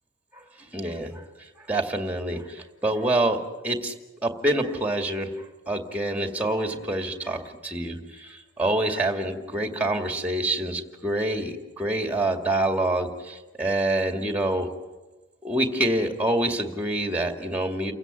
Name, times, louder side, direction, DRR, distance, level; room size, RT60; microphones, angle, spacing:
voice 1, 0.7-1.2 1.7-3.9 4.2-5.3 5.7-14.7 15.4-17.9, right 1 dB, 5° right, 5 dB, 2.1 m, -26 dB
29.5 x 16.0 x 9.6 m, 1.2 s
head